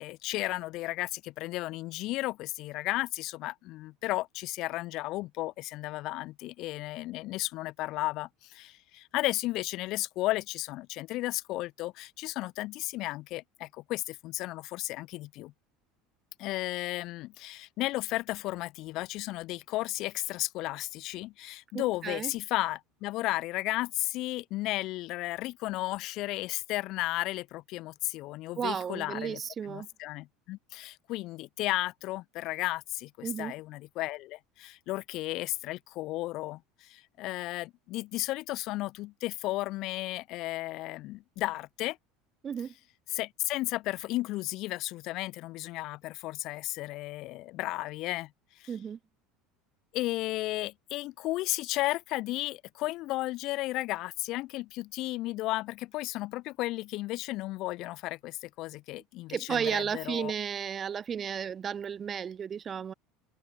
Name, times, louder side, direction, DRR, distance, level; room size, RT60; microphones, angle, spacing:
voice 1, 0.0-15.5 16.4-29.4 29.7-42.0 43.1-48.3 48.6-48.7 49.9-60.3, left 18 dB, 50° left, 0.4 m, -34 dB
voice 2, 21.7-22.3 28.6-29.9 33.2-33.5 42.4-42.7 48.7-49.0 59.3-62.9, right 7 dB, 30° right, 0.5 m, -33 dB
figure-of-eight pair, 70°, 0 cm